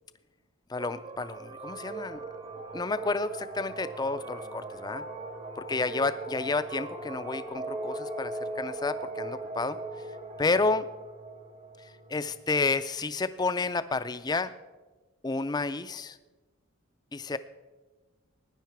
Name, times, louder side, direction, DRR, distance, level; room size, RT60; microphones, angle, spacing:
voice 1, 0.7-2.3 2.7-5.0 5.7-10.1 10.4-10.9 11.8-14.5 15.2-16.2 17.1-17.4, left 3 dB, 20° left, 13 dB, 0.3 m, -30 dB
sound 1, 0.8-12.6, right 2 dB, 30° right, 0.8 m, -39 dB
16.5 x 10.0 x 4.6 m, 1.2 s
head